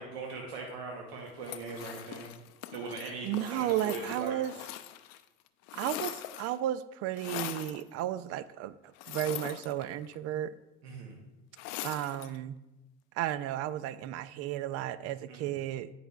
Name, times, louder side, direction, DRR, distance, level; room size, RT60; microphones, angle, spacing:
voice 1, 0.0-2.3 2.7-4.4 10.8-11.2 15.3-15.6, right 3 dB, 85° right, 0 dB, 1.0 m, -41 dB
sound 1, 1.4-5.2 5.5-6.6 7.2-7.8 9.0-10.2 11.6-12.4, left 13 dB, 60° left, 0.5 m, -41 dB
voice 2, 3.2-4.5 5.7-10.5 11.8-12.6 13.1-15.9, right 12 dB, 50° right, 16 dB, 0.4 m, -33 dB
9.9 x 4.9 x 2.3 m, 0.98 s
hypercardioid pair, 80°, 31 cm